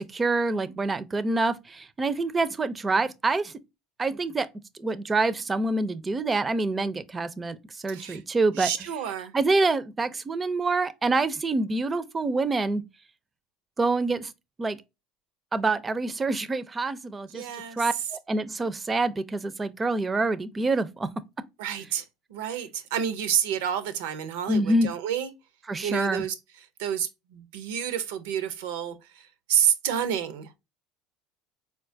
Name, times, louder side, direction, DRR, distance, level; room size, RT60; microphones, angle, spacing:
voice 1, 0.0-3.5 4.0-4.5 4.8-8.7 9.3-12.8 13.8-14.3 14.6-14.8 15.5-17.4 17.8-21.1 24.5-24.9 25.7-26.2, right 3 dB, 25° right, 0.4 m, -26 dB
voice 2, 7.9-8.2 8.6-9.3 17.3-18.1 21.6-25.3 25.8-30.5, right 9 dB, 80° right, 0.5 m, -29 dB
4.2 x 2.3 x 2.5 m
supercardioid pair, 90°, 0 cm